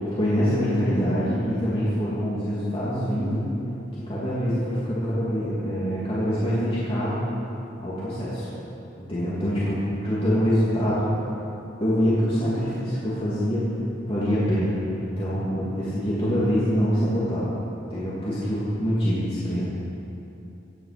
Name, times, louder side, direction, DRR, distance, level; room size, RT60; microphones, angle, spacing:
voice 1, 0.2-3.4 4.1-7.2 7.8-8.5 9.0-11.1 11.8-13.7 14.1-17.4 17.9-19.7, equal, 30° left, -9 dB, 2.6 m, -25 dB
16.0 x 10.0 x 6.0 m, 2.8 s
head